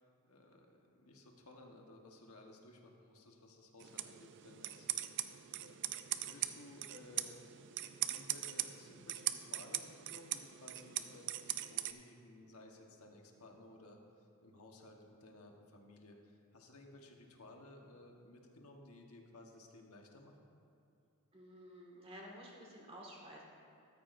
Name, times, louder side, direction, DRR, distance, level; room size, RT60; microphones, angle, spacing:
voice 1, 0.0-7.5 8.1-11.4 11.7-20.5, left 1 dB, 75° left, 1 dB, 1.3 m, -58 dB
sound 1, 3.8-11.9, right 13 dB, 55° right, 0.4 m, -41 dB
voice 2, 21.3-23.4, equal, 25° right, -2 dB, 1.8 m, -52 dB
14.0 x 13.0 x 2.6 m, 2.6 s
head